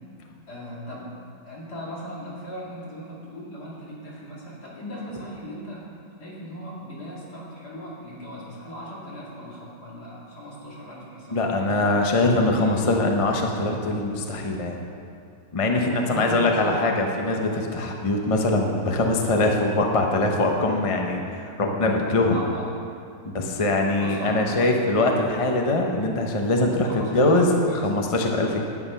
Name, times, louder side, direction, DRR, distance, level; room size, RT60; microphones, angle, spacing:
voice 1, 0.5-1.1 1.5-5.8 6.2-11.9 12.4-12.7 16.1-17.0 22.3-22.7 24.0-24.6 26.8-27.9, equal, 70° left, -6 dB, 3.0 m, -38 dB
voice 2, 11.3-14.8 15.5-21.2 21.6-22.4 23.3-26.9 27.1-27.5 27.8-28.6, left 2 dB, 25° left, 2 dB, 0.7 m, -22 dB
11.0 x 8.6 x 5.6 m, 2.4 s
omnidirectional pair, 1.8 m